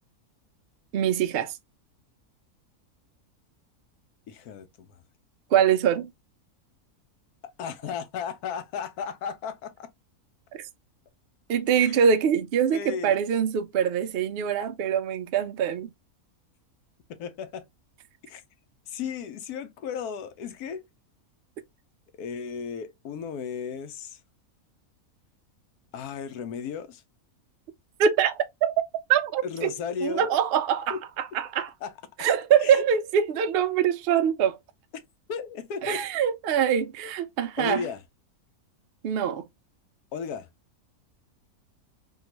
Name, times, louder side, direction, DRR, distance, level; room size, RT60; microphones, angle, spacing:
voice 1, 0.9-1.5 5.5-6.1 10.6-10.7 11.5-15.9 28.0-28.7 29.1-29.7 30.0-31.7 32.2-34.6 35.8-37.9 39.0-39.4, right 8 dB, 90° right, 0.5 m, -24 dB
voice 2, 4.3-5.0 7.6-9.9 11.7-12.1 12.7-13.2 17.1-17.6 18.2-18.4 18.9-20.8 22.2-24.2 25.9-27.0 29.4-30.4 30.9-31.0 31.8-31.9 32.6-32.8 35.3-36.0 37.6-38.0 40.1-40.5, left 6 dB, 85° left, 1.2 m, -35 dB
3.6 x 2.3 x 2.9 m
omnidirectional pair, 1.6 m